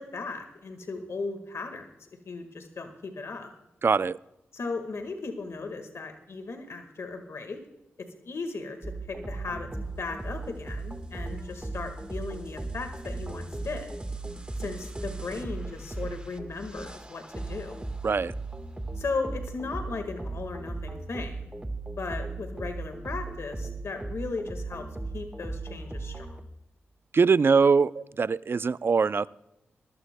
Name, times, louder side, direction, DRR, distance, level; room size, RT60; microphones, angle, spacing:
voice 1, 0.0-3.5 4.5-7.6 8.0-13.9 14.6-17.8 18.9-21.5 22.0-24.9 25.1-26.3, left 3 dB, 65° left, 6 dB, 1.6 m, -36 dB
voice 2, 3.8-4.2 18.0-18.3 27.1-29.3, right 5 dB, 50° right, 18 dB, 0.4 m, -22 dB
sound 1, 8.8-26.4, right 2 dB, 20° right, 1.4 m, -37 dB
20.0 x 14.5 x 2.2 m, 0.91 s
cardioid pair, 45°, 5 cm